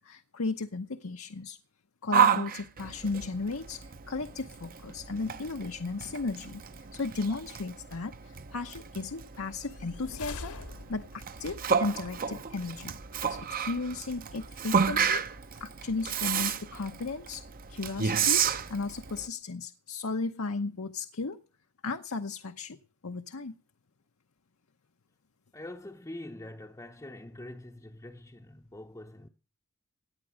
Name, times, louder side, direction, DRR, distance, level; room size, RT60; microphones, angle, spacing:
voice 1, 0.0-1.6 2.0-10.6 10.9-12.9 13.3-15.2 15.6-17.4 17.7-21.4 21.8-22.8 23.0-23.6, left 3 dB, 65° left, 0.9 m, -35 dB
Yell, 2.1-19.3, right 7 dB, 40° right, 0.8 m, -31 dB
sound 1, 9.6-11.4, left 3 dB, 80° left, 1.9 m, -43 dB
voice 2, 25.5-29.3, left 1 dB, 15° left, 0.8 m, -44 dB
18.0 x 10.0 x 6.3 m
head